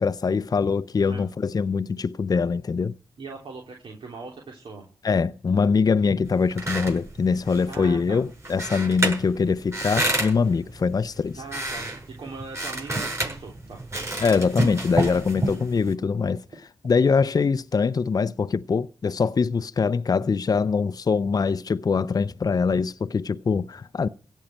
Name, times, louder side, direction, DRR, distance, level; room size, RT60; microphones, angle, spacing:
voice 1, 0.0-2.9 5.0-11.4 14.2-16.4 16.8-24.1, left 5 dB, 40° left, 0.6 m, -23 dB
voice 2, 3.2-4.8 7.7-8.2 11.3-13.8 15.4-15.6, right 4 dB, 65° right, 3.2 m, -40 dB
sound 1, 6.2-15.9, right 1 dB, 30° right, 7.6 m, -30 dB
16.5 x 5.6 x 9.1 m
cardioid pair, 60°, 10 cm